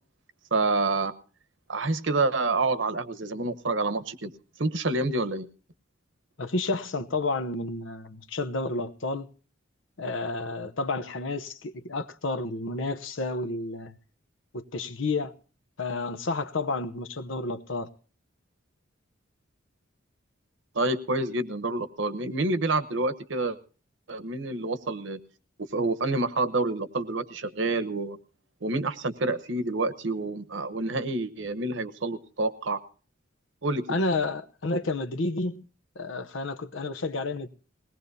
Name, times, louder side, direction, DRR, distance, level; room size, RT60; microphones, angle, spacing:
voice 1, 0.5-1.1 1.7-4.3 4.6-5.5 20.7-23.6 24.1-25.2 25.6-28.2 28.6-32.8 33.6-34.0, right 2 dB, 65° right, 1.0 m, -28 dB
voice 2, 6.4-9.3 10.0-14.0 14.5-15.3 15.8-17.9 33.9-35.6 36.0-37.5, left 3 dB, 70° left, 0.9 m, -30 dB
20.5 x 18.5 x 2.7 m
head